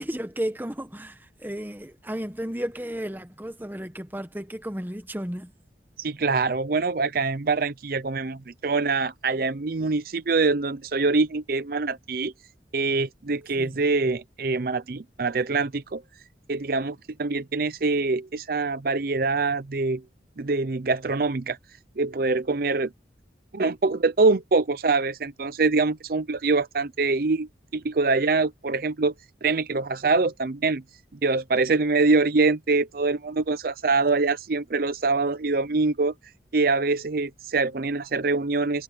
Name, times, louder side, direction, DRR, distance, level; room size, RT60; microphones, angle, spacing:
voice 1, 0.0-5.5 13.6-13.8, equal, 10° right, 1.1 m, -33 dB
voice 2, 6.0-12.3 12.7-16.0 16.5-20.0 20.4-21.6 22.0-22.9 23.5-29.1 29.4-30.8 31.2-36.1 36.5-38.8, right 3 dB, 50° right, 0.6 m, -24 dB
head